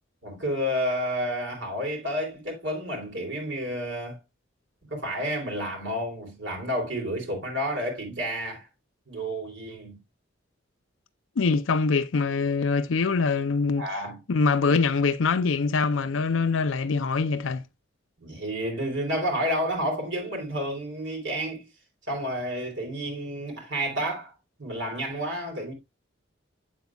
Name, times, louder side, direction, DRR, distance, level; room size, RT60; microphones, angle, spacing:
voice 1, 0.2-4.2 4.9-8.7 9.1-10.0 13.8-14.2 18.2-21.7 22.1-25.7, equal, 65° right, 3.5 m, -30 dB
voice 2, 11.4-13.8 14.3-17.6, left 4 dB, 80° left, 0.5 m, -24 dB
8.3 x 8.0 x 2.3 m
head